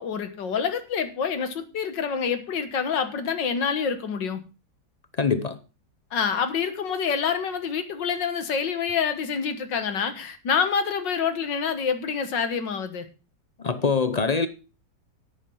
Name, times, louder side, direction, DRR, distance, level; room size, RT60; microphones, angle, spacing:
voice 1, 0.0-4.4 6.1-13.1, left 6 dB, 80° left, 2.1 m, -27 dB
voice 2, 5.2-5.6 13.6-14.5, left 5 dB, 55° left, 0.4 m, -23 dB
10.5 x 8.7 x 5.3 m
omnidirectional pair, 1.9 m